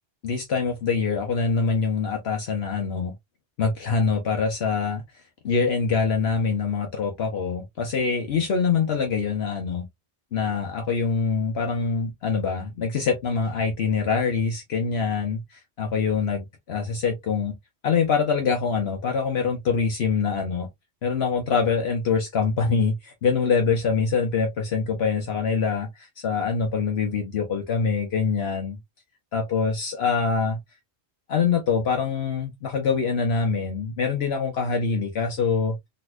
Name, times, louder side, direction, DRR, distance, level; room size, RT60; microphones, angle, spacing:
voice 1, 0.2-3.1 3.6-5.0 5.4-9.9 10.3-15.4 15.8-17.5 17.8-20.7 21.0-25.9 26.2-28.8 29.3-30.6 31.3-35.8, left 5 dB, 70° left, 1.1 m, -24 dB
4.0 x 2.4 x 2.5 m
omnidirectional pair, 1.1 m